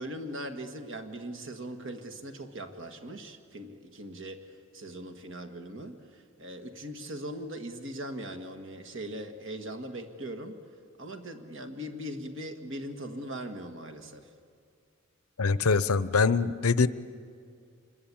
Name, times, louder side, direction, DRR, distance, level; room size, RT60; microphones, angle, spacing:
voice 1, 0.0-10.6 11.0-14.3, right 1 dB, 60° right, 6 dB, 1.8 m, -40 dB
voice 2, 15.4-16.9, left 4 dB, 80° left, 15 dB, 0.8 m, -24 dB
26.5 x 22.0 x 8.7 m, 2.3 s
head